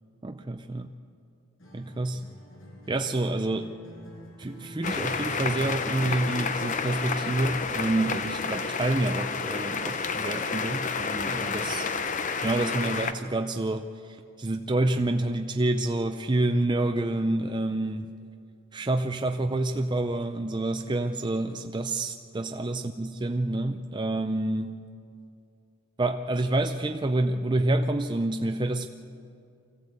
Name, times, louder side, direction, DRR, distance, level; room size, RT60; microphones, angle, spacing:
voice 1, 0.2-0.9 1.7-2.2 2.9-3.8 4.4-11.9 12.4-18.1 18.7-24.8 26.0-28.9, right 2 dB, 20° right, 6 dB, 0.4 m, -28 dB
Acoustic guitar, 1.6-7.0, equal, 65° left, 5.5 m, -47 dB
sound 1, 4.8-13.1, left 5 dB, 35° left, 0.7 m, -30 dB
24.5 x 15.5 x 8.0 m, 2.5 s
head